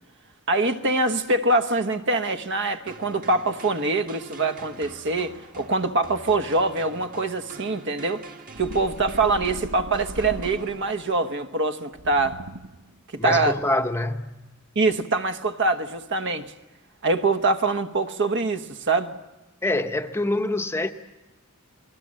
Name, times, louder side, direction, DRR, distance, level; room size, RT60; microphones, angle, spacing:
voice 1, 0.5-8.2 8.6-12.4 13.2-13.6 14.7-16.4 17.0-19.1, right 3 dB, 55° right, 1.1 m, -24 dB
sound 1, 2.9-11.2, right 3 dB, 40° right, 1.6 m, -45 dB
sound 2, 8.5-11.0 11.9-12.9, right 1 dB, 75° right, 0.9 m, -38 dB
voice 2, 13.2-14.4 19.6-20.9, left 2 dB, 10° left, 0.8 m, -25 dB
29.5 x 20.5 x 7.6 m
head